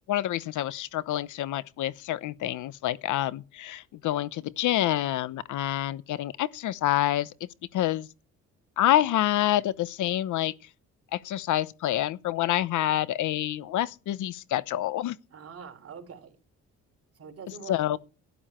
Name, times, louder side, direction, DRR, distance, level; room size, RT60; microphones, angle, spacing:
voice 1, 0.1-7.3 7.7-8.1 8.8-10.5 11.1-15.2 17.7-18.0, left 13 dB, 80° left, 0.9 m, -27 dB
voice 2, 15.3-16.4 17.2-18.0, right 6 dB, 50° right, 3.6 m, -44 dB
12.5 x 11.0 x 4.4 m
cardioid pair, 90°, 30 cm